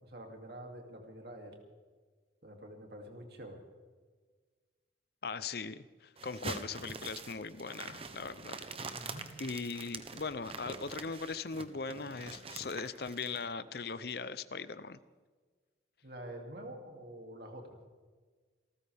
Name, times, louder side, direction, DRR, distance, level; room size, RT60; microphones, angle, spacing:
voice 1, 0.0-1.6 2.4-3.6 8.9-9.3 16.0-17.8, right 1 dB, 55° right, 2 dB, 2.8 m, -47 dB
voice 2, 5.2-8.6 9.4-15.0, left 4 dB, 55° left, 14 dB, 0.7 m, -39 dB
sound 1, 6.2-13.4, right 4 dB, 30° right, 1.0 m, -45 dB
28.5 x 14.0 x 3.6 m, 1.5 s
head